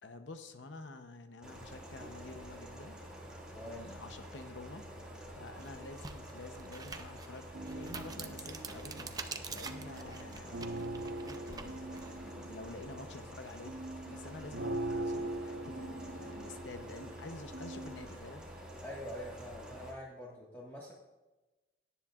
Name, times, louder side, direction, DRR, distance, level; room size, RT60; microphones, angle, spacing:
voice 1, 0.0-3.0 3.6-4.8 5.3-9.1 9.5-10.8 11.2-13.8 14.0-18.5, left 3 dB, 90° left, 7 dB, 0.8 m, -49 dB
sound 1, 1.4-19.9, equal, 5° right, 2.1 m, -48 dB
voice 2, 3.5-3.8 18.8-20.9, equal, 10° left, -6 dB, 1.6 m, -45 dB
sound 2, 4.8-4.9 5.5-12.1, right 5 dB, 20° right, 0.6 m, -46 dB
sound 3, 7.5-18.0, right 1 dB, 70° right, 0.9 m, -42 dB
17.5 x 10.0 x 2.5 m, 1.1 s
head